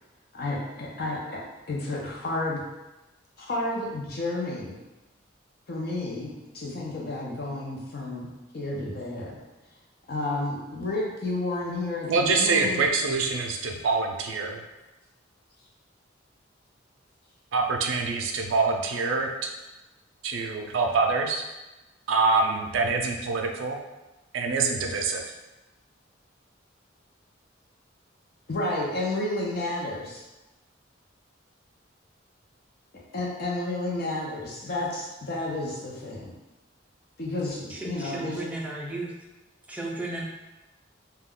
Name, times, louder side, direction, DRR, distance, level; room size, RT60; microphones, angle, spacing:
voice 1, 0.3-1.4 1.7-2.6 3.4-4.7 5.7-9.4 10.1-12.8 28.5-30.2 33.1-36.3 37.2-38.4, left 2 dB, 55° left, -3 dB, 0.6 m, -31 dB
voice 2, 12.0-14.6 17.5-19.5 20.2-21.4 22.1-23.8 24.3-25.2, right 4 dB, 80° right, 3 dB, 0.4 m, -25 dB
voice 3, 37.7-39.1 39.7-40.2, right 2 dB, 5° right, -3 dB, 0.4 m, -34 dB
2.3 x 2.2 x 3.6 m, 1.1 s
head